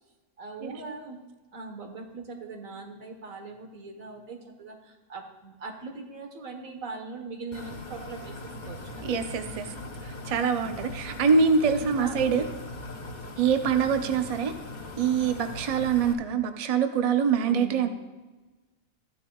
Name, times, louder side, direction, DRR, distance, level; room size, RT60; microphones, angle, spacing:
voice 1, 0.4-1.2 1.5-8.4 8.6-9.1 10.6-10.9 11.8-12.5 14.1-14.2 17.4-17.9, right 4 dB, 80° right, 3 dB, 1.7 m, -40 dB
sound 1, 7.5-16.1, left 2 dB, 40° left, 1.0 m, -40 dB
voice 2, 9.0-9.7 10.0-12.5 13.4-14.5 15.0-17.9, right 6 dB, 45° right, 7 dB, 0.5 m, -24 dB
13.5 x 9.4 x 2.3 m, 1.2 s
omnidirectional pair, 1.4 m